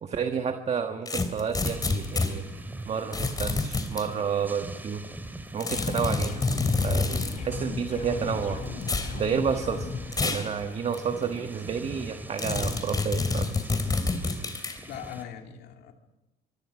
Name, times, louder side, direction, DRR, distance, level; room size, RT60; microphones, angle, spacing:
voice 1, 0.0-5.0 5.5-6.4 6.8-8.7 9.1-9.9 10.2-13.5, right 6 dB, 40° right, 6 dB, 1.5 m, -30 dB
sound 1, 1.1-2.3 3.1-4.1 5.6-7.4 8.8-9.1 10.1-10.5 10.9-11.0 12.4-14.8, left 3 dB, 20° left, 3.0 m, -28 dB
sound 2, 1.6-15.2, right 1 dB, 10° right, 2.6 m, -42 dB
sound 3, 5.7-10.1, left 5 dB, 45° left, 7.1 m, -36 dB
voice 2, 14.9-15.9, left 9 dB, 75° left, 4 dB, 2.7 m, -41 dB
24.5 x 24.0 x 5.1 m, 1.0 s
cardioid pair, 110°, 17 cm